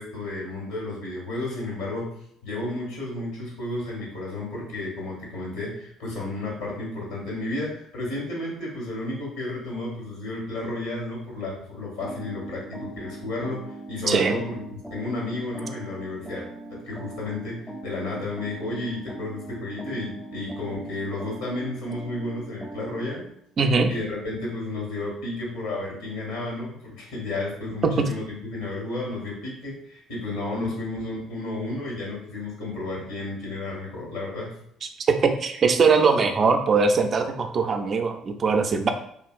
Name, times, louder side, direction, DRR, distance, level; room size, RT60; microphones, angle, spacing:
voice 1, 0.0-2.1 2.4-14.6 14.9-23.2 23.9-34.5, left 2 dB, 75° left, -3 dB, 1.3 m, -32 dB
sound 1, 12.0-23.3, right 2 dB, 5° left, 0.5 m, -40 dB
voice 2, 23.6-23.9 27.8-28.0 35.1-38.9, right 4 dB, 45° right, 6 dB, 0.4 m, -21 dB
2.9 x 2.6 x 2.5 m, 0.69 s
hypercardioid pair, 55°, 0 cm